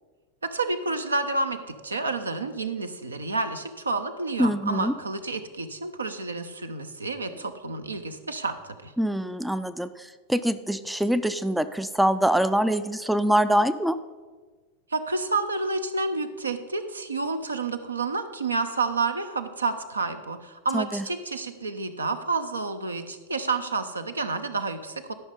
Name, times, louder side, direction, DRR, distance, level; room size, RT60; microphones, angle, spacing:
voice 1, 0.4-8.9 14.9-25.1, right 3 dB, 75° right, 8 dB, 0.7 m, -29 dB
voice 2, 4.4-4.9 9.0-14.0 20.7-21.1, right 1 dB, ahead, 12 dB, 0.4 m, -24 dB
12.5 x 5.7 x 5.3 m, 1.4 s
figure-of-eight pair, 90°, 0 cm